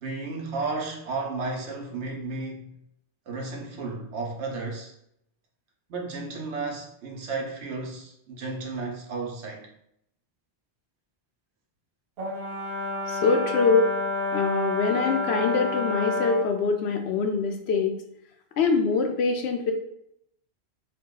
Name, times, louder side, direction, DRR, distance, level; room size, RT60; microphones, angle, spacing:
voice 1, 0.0-2.8 3.3-4.9 5.9-9.7, right 3 dB, 90° right, 1.0 m, -33 dB
Brass instrument, 12.2-16.5, left 2 dB, 65° right, 0.8 m, -29 dB
voice 2, 13.1-13.9 14.3-17.9 18.6-19.7, left 4 dB, 75° left, 0.8 m, -24 dB
2.8 x 2.2 x 3.6 m
omnidirectional pair, 1.1 m